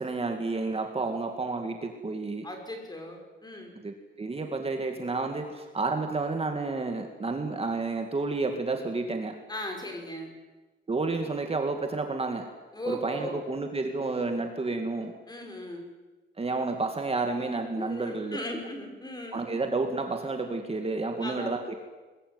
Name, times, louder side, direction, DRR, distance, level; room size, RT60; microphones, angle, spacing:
voice 1, 0.0-2.5 3.8-9.4 10.9-12.5 12.9-15.1 16.4-18.4 19.3-21.7, right 3 dB, 30° right, 4 dB, 2.3 m, -30 dB
voice 2, 2.4-3.7 9.5-10.3 12.7-13.4 15.3-15.9 17.7-19.4 21.2-21.6, left 1 dB, 20° left, 3 dB, 5.4 m, -37 dB
23.0 x 21.0 x 9.7 m, 1.2 s
wide cardioid pair, 160°, 20 cm